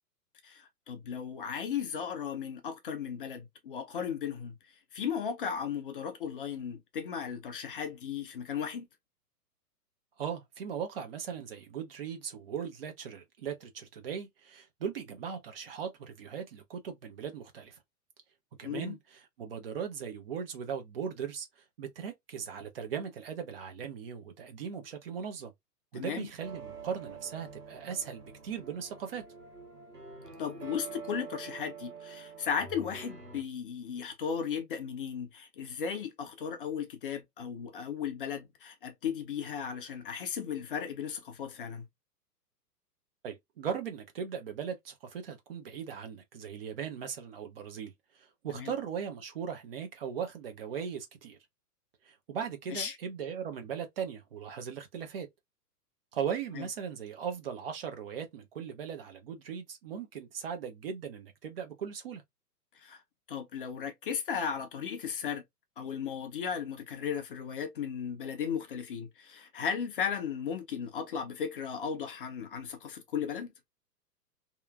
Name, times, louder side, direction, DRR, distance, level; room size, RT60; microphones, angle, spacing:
voice 1, 0.4-4.6 4.9-8.9 18.6-19.0 25.9-26.3 30.4-41.9 48.6-48.7 52.7-53.0 56.5-56.7 62.8-63.0 63.3-65.4 65.8-73.5, left 7 dB, 35° left, 0.6 m, -36 dB
voice 2, 10.2-17.8 18.6-25.5 25.9-29.2 43.2-51.4 52.0-55.3 56.1-62.2, right 7 dB, 35° right, 0.7 m, -38 dB
sound 1, 26.4-33.4, right 5 dB, 75° right, 1.5 m, -46 dB
2.9 x 2.4 x 2.2 m
figure-of-eight pair, 110°, 49 cm